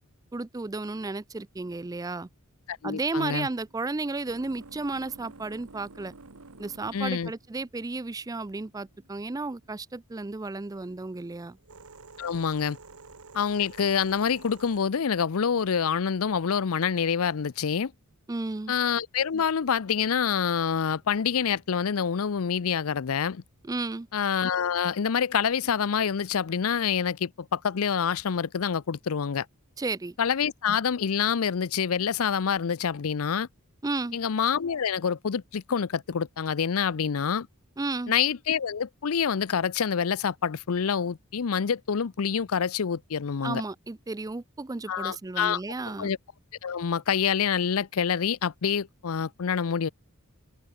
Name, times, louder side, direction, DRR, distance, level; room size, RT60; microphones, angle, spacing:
voice 1, 0.3-2.3 2.8-6.1 6.6-11.6 18.3-18.7 23.6-24.1 29.8-30.1 33.8-34.2 37.8-38.1 43.4-46.1, right 3 dB, 15° right, 0.4 m, -33 dB
voice 2, 2.7-3.5 6.9-7.3 12.2-12.8 13.3-17.9 18.7-23.4 24.1-29.5 30.2-33.5 34.1-37.5 38.1-43.6 44.9-45.6 46.0-46.2 46.6-49.9, left 7 dB, 75° left, 0.5 m, -27 dB
sound 1, 3.7-9.7 10.5-16.3 17.3-17.8, right 3 dB, 80° right, 1.5 m, -51 dB
head